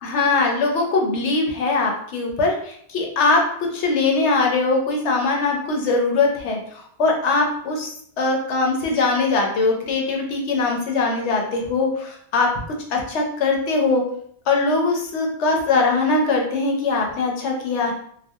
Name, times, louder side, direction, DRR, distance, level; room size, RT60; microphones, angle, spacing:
voice 1, 0.0-3.4 3.7-7.9 8.2-12.5 12.9-14.0 14.5-17.9, left 3 dB, 80° left, 1 dB, 0.9 m, -21 dB
2.4 x 2.2 x 2.6 m, 0.64 s
omnidirectional pair, 1.2 m